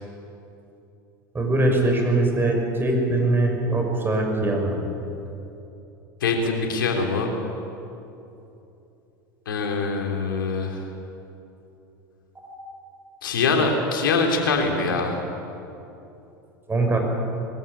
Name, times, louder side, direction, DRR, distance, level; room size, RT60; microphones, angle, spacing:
voice 1, 1.3-4.9 16.7-17.0, right 2 dB, 20° right, 2 dB, 5.9 m, -22 dB
voice 2, 6.2-7.3 9.5-10.8 13.2-15.2, left 4 dB, 80° left, 2 dB, 3.3 m, -23 dB
21.0 x 14.5 x 10.0 m, 2.9 s
hypercardioid pair, 80°, 11 cm